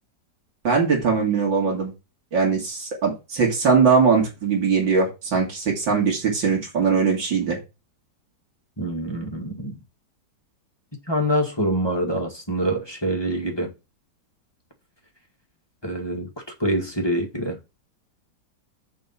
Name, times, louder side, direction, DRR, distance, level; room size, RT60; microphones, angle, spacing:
voice 1, 0.6-1.9 2.3-7.6, right 5 dB, 85° right, 3.4 m, -21 dB
voice 2, 8.8-9.7 11.1-13.7 15.8-16.3 16.6-17.6, right 1 dB, 15° left, 1.7 m, -25 dB
7.0 x 5.4 x 5.6 m
omnidirectional pair, 2.0 m